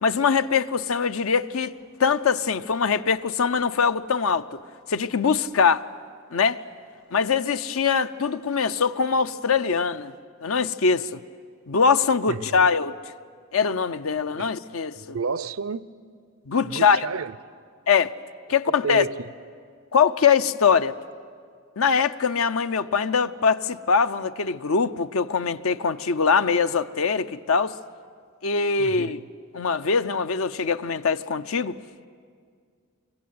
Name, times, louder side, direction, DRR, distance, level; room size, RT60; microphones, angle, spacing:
voice 1, 0.0-1.7 2.0-4.4 4.9-5.9 6.3-6.6 7.1-10.1 10.4-11.2 11.7-12.9 13.5-15.2 16.5-17.0 17.9-18.1 18.5-19.1 19.9-20.9 21.8-27.8 28.4-29.2 29.5-31.7, left 5 dB, 85° left, 0.6 m, -22 dB
voice 2, 12.3-12.7 14.4-14.5 14.9-15.9 16.6-17.4 18.5-19.3 28.8-29.2, right 5 dB, 85° right, 0.6 m, -32 dB
25.0 x 23.0 x 9.4 m
head